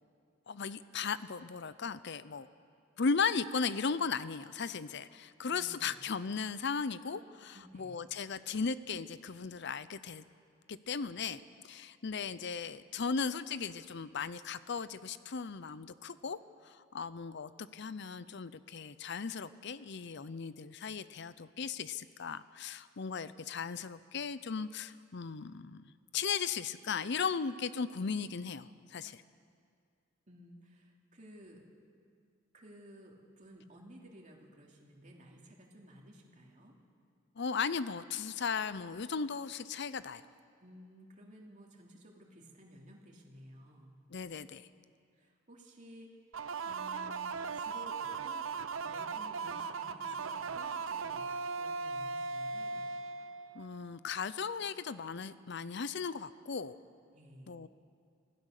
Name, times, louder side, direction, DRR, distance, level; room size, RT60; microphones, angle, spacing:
voice 1, 0.5-2.5 3.0-10.2 10.7-16.4 16.6-25.8 26.1-29.2 37.4-40.2 44.1-44.7 53.5-56.7 57.5-57.7, left 5 dB, 60° left, 15 dB, 0.6 m, -37 dB
voice 2, 5.5-6.0 7.5-8.0 30.3-31.7 32.5-36.7 40.6-43.9 45.1-46.2 46.6-51.3 51.5-52.9 57.1-57.6, equal, 40° right, -1 dB, 2.8 m, -55 dB
sound 1, 46.3-53.9, right 4 dB, 75° right, 0.7 m, -38 dB
25.5 x 16.0 x 6.6 m, 2.3 s
head